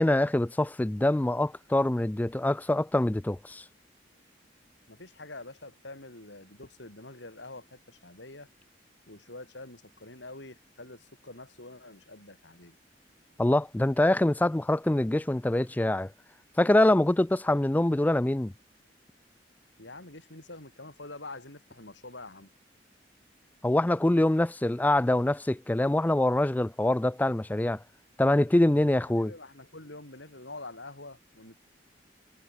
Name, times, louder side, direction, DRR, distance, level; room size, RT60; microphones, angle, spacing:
voice 1, 0.0-3.6 13.4-16.1 16.6-18.5 23.6-27.8 28.2-29.3, left 1 dB, 10° left, 0.3 m, -24 dB
voice 2, 4.9-8.5 9.1-12.8 17.5-17.6 19.8-22.5 29.2-31.6, left 2 dB, 80° left, 6.7 m, -46 dB
head